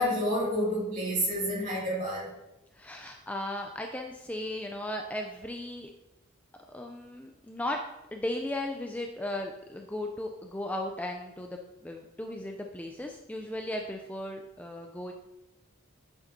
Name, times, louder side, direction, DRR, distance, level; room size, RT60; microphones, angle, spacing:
voice 1, 0.0-2.3, equal, 40° right, -5 dB, 2.3 m, -29 dB
voice 2, 2.8-5.9 6.7-7.8 8.1-15.1, left 1 dB, 5° left, 2 dB, 0.3 m, -36 dB
7.0 x 6.7 x 2.7 m, 0.96 s
head